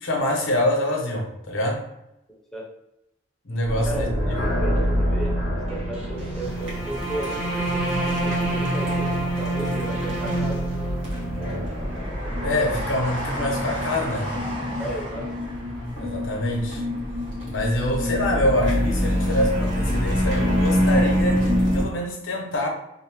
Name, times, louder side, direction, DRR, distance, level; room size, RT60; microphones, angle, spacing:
voice 1, 0.0-1.8 3.4-4.3 12.4-14.3 16.0-16.8 17.5-22.7, left 1 dB, 85° left, 0 dB, 0.8 m, -25 dB
voice 2, 2.3-2.7 3.8-10.9 14.8-15.3, right 1 dB, ahead, -3 dB, 0.5 m, -35 dB
sound 1, 3.6-21.8, equal, 65° right, 1.2 m, -25 dB
sound 2, 5.0-13.1, equal, 30° right, 0.7 m, -42 dB
Train, 6.3-7.5 8.0-8.9 9.4-18.2 18.5-18.6, equal, 80° right, 1.3 m, -35 dB
2.6 x 2.1 x 3.0 m, 0.86 s
head